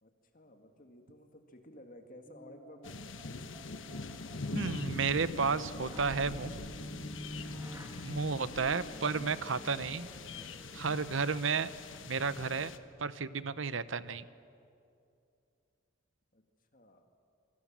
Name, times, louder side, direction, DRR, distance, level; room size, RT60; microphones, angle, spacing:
voice 1, 0.0-3.0 8.1-8.3 16.3-16.4 16.7-17.1, left 1 dB, 45° left, 5 dB, 2.0 m, -54 dB
sound 1, 2.3-11.3, equal, 15° right, 1.8 m, -50 dB
sound 2, 2.8-12.8, left 3 dB, 70° left, 1.2 m, -43 dB
voice 2, 4.5-6.6 8.0-10.1 10.7-11.7 12.1-12.7 13.0-14.2, right 5 dB, 70° right, 14 dB, 0.8 m, -32 dB
26.0 x 23.0 x 7.5 m, 2.5 s
head